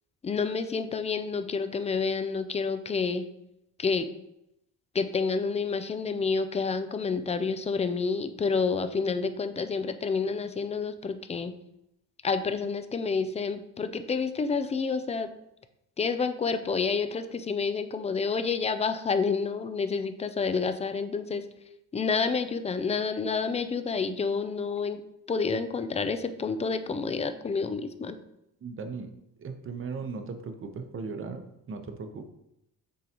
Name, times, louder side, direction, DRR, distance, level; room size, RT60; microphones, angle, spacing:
voice 1, 0.2-3.2 3.8-4.1 4.9-11.5 12.2-15.3 16.0-21.4 21.9-25.0 25.3-28.2, left 5 dB, 20° left, 10 dB, 0.3 m, -29 dB
voice 2, 28.6-29.1 29.4-32.3, right 4 dB, 35° right, 6 dB, 0.8 m, -37 dB
9.2 x 3.8 x 2.9 m, 0.83 s
cardioid pair, 120°, 38 cm